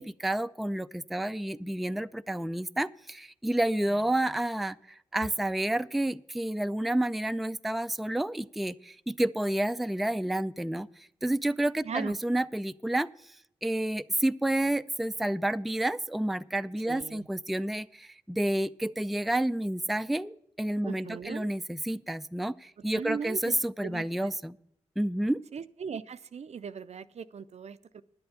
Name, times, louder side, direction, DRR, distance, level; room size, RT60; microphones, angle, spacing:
voice 1, 0.0-13.1 13.6-24.6 25.0-25.4, right 1 dB, ahead, 12 dB, 0.4 m, -30 dB
voice 2, 11.8-12.1 16.9-17.3 20.8-21.5 22.9-23.6 23.8-24.3 25.5-28.0, right 6 dB, 60° right, 13 dB, 0.5 m, -38 dB
10.5 x 8.0 x 6.6 m, 0.72 s
cardioid pair, 50°, 12 cm